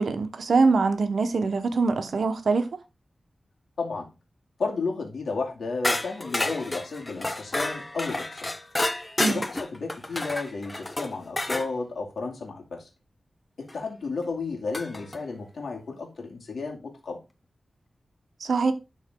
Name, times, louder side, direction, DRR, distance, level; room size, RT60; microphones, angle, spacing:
voice 1, 0.0-2.7 9.2-9.4 18.4-18.7, right 4 dB, 80° right, 1.2 m, -23 dB
voice 2, 3.8-4.1 4.6-8.5 9.3-12.9 13.6-17.2, left 4 dB, 85° left, 2.4 m, -33 dB
sound 1, 5.8-11.7 13.7-13.8 14.7-15.2, left 2 dB, 25° left, 0.9 m, -30 dB
11.5 x 4.2 x 3.8 m
wide cardioid pair, 105°, 0 cm